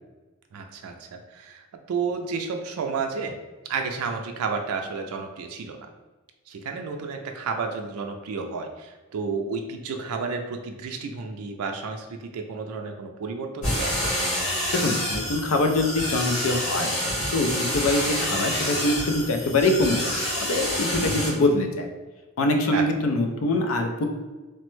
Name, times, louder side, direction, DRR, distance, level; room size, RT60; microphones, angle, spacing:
voice 1, 0.5-3.4 3.7-5.8 6.5-14.1 21.0-21.3 22.7-22.8, right 5 dB, 85° right, 4 dB, 0.3 m, -31 dB
sound 1, 13.6-21.3, equal, 35° left, 1.3 m, -28 dB
voice 2, 14.7-17.0 17.3-21.9 22.4-24.0, left 2 dB, 70° left, 5 dB, 0.4 m, -24 dB
3.2 x 2.1 x 3.1 m, 1.2 s
head